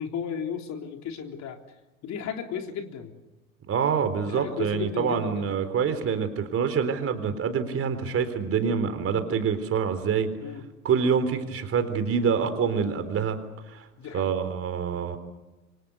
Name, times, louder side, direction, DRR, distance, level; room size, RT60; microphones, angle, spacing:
voice 1, 0.0-1.6 2.0-3.1 4.2-5.5 10.4-10.6 14.0-14.4, left 7 dB, 35° left, 4 dB, 3.7 m, -34 dB
voice 2, 3.7-10.3 10.8-13.4 13.7-13.9 14.1-15.2, right 6 dB, 30° right, 9 dB, 3.9 m, -26 dB
28.0 x 26.0 x 6.9 m, 1.1 s
hypercardioid pair, 90°, 45 cm